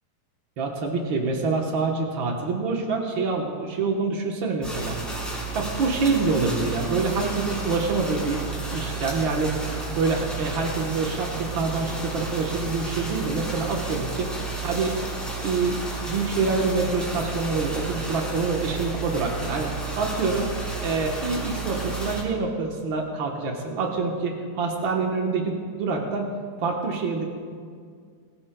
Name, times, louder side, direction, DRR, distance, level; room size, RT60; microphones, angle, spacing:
voice 1, 0.6-4.9 5.5-8.4 8.7-9.6 10.0-14.4 14.6-14.9 15.4-19.7 19.9-20.5 20.8-26.3 26.6-27.2, right 4 dB, 85° right, 1 dB, 1.0 m, -26 dB
sound 1, 4.6-22.2, right 3 dB, ahead, 2.7 m, -32 dB
21.5 x 15.0 x 2.2 m, 2.1 s
omnidirectional pair, 3.9 m